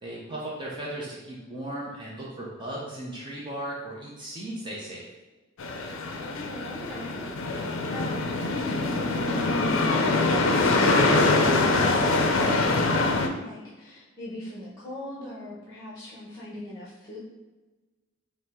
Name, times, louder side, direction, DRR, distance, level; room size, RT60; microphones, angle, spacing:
voice 1, 0.0-5.1, right 1 dB, 25° right, -4 dB, 0.6 m, -36 dB
sound 1, 5.6-13.3, left 3 dB, 70° left, 0.4 m, -24 dB
voice 2, 6.1-17.2, left 1 dB, 15° left, -8 dB, 0.9 m, -40 dB
5.2 x 2.0 x 3.5 m, 1.2 s
head